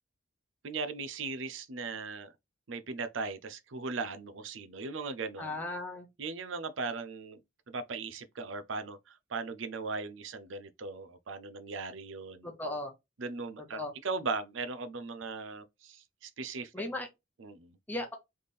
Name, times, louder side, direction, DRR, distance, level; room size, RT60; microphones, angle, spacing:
voice 1, 0.6-2.3 2.7-5.6 6.2-7.4 7.7-12.5 13.2-16.7 17.4-17.8, right 4 dB, 70° right, 0.6 m, -38 dB
voice 2, 5.4-6.1 12.4-12.9 13.7-13.9 16.7-17.1 17.9-18.1, left 2 dB, 10° left, 0.8 m, -36 dB
3.5 x 3.3 x 4.1 m
head